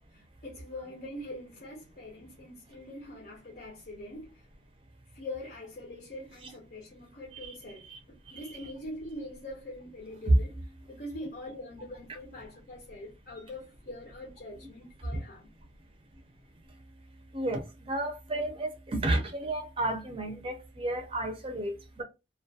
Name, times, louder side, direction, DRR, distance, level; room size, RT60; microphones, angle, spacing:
voice 1, 0.1-4.4 5.1-7.9 8.3-10.5 10.9-15.5, left 1 dB, 55° left, 0.6 m, -43 dB
voice 2, 8.3-8.7 10.3-10.4 17.3-17.6 17.9-22.0, right 1 dB, 30° right, 0.5 m, -30 dB
2.2 x 2.2 x 2.6 m
head